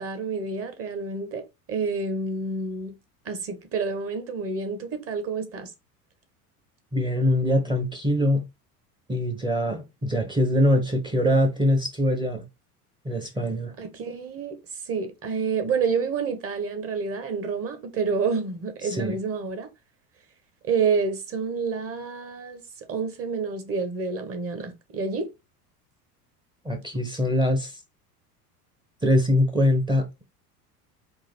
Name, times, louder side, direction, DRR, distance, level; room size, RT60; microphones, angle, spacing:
voice 1, 0.0-2.9 3.2-5.7 13.8-14.6 14.8-19.7 20.6-22.6 22.9-25.3, right 5 dB, 30° right, 1.0 m, -28 dB
voice 2, 6.9-8.4 9.1-12.5 13.0-13.7 18.8-19.2 26.6-27.8 29.0-30.2, left 1 dB, 10° right, 0.7 m, -23 dB
3.8 x 2.5 x 4.2 m
figure-of-eight pair, 75°, 47 cm